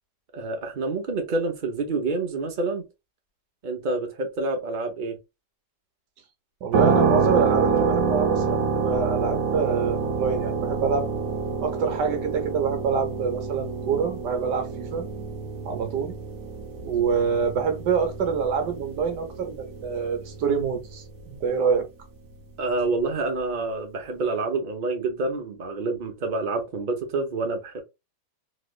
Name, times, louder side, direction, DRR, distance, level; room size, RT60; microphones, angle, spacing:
voice 1, 0.3-2.9 3.6-5.2 22.6-27.8, right 3 dB, 35° right, 0.9 m, -28 dB
voice 2, 6.6-11.1 11.6-15.1 15.6-16.1 16.8-21.9, right 6 dB, 80° right, 1.5 m, -26 dB
sound 1, 6.7-21.4, right 5 dB, 60° right, 1.1 m, -27 dB
3.3 x 3.0 x 2.4 m
omnidirectional pair, 1.8 m